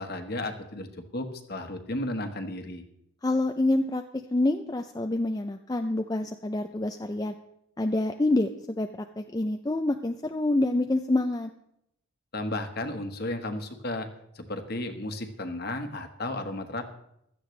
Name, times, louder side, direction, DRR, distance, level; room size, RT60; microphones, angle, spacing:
voice 1, 0.0-2.8 12.3-14.1 14.3-16.8, left 1 dB, 45° left, 6 dB, 1.3 m, -34 dB
voice 2, 3.2-7.3 7.8-11.5, left 2 dB, 15° left, 5 dB, 0.4 m, -27 dB
16.0 x 12.5 x 3.3 m, 0.77 s
head